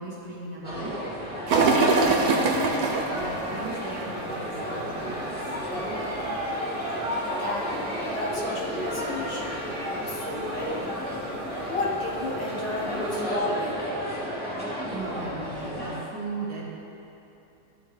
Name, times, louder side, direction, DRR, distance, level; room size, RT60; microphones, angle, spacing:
voice 1, 0.0-6.1 14.9-16.6, right 2 dB, 80° right, -7 dB, 2.9 m, -38 dB
sound 1, 0.6-16.0, equal, 5° left, 2.2 m, -32 dB
sound 2, 1.5-13.3, right 3 dB, 60° right, 1.4 m, -30 dB
voice 2, 7.3-9.6 10.0-11.2 11.7-13.8, left 2 dB, 75° left, -5 dB, 2.4 m, -32 dB
15.0 x 7.8 x 3.4 m, 2.9 s
omnidirectional pair, 1.9 m